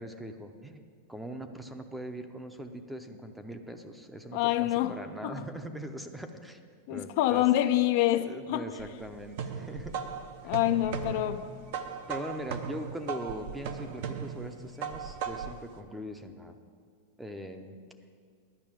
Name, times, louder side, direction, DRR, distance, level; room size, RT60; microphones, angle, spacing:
voice 1, 0.0-6.6 6.9-7.7 8.1-10.1 10.4-10.5 12.1-16.6 17.2-17.8, right 1 dB, 5° right, 0.6 m, -41 dB
voice 2, 4.3-5.0 5.2-5.5 6.9-8.6 10.4-11.5, left 14 dB, 55° left, 0.4 m, -26 dB
sound 1, 8.8-15.6, right 6 dB, 60° right, 0.8 m, -37 dB
11.0 x 5.7 x 8.8 m
supercardioid pair, 150°, 0 cm